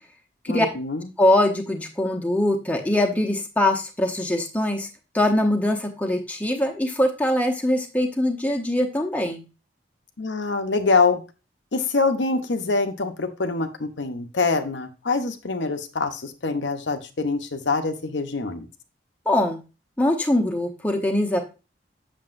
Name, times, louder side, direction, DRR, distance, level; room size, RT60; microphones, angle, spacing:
voice 1, 0.5-1.1 10.2-11.2 11.7-18.7, left 4 dB, 80° left, 7 dB, 0.8 m, -25 dB
voice 2, 1.2-4.9 5.1-9.4 19.3-19.6 20.0-21.4, left 1 dB, 10° left, 2 dB, 0.9 m, -22 dB
7.6 x 6.7 x 2.5 m, 0.30 s
head